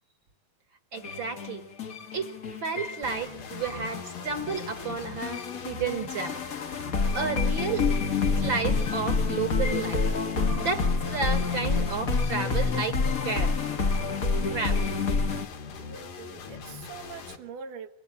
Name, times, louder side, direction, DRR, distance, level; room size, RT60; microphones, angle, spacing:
voice 1, 0.9-1.6 2.1-2.3 2.6-6.4 7.1-7.8 8.4-10.0 10.5-13.6 14.5-14.9, right 5 dB, 50° right, 9 dB, 1.6 m, -32 dB
sound 1, 1.0-15.5, left 4 dB, 50° left, 1.0 m, -28 dB
sound 2, 3.0-17.4, left 5 dB, 85° left, 3.9 m, -42 dB
voice 2, 14.3-14.9 15.8-17.9, right 6 dB, 90° right, 5 dB, 3.2 m, -43 dB
29.0 x 23.5 x 8.7 m, 0.71 s
omnidirectional pair, 3.6 m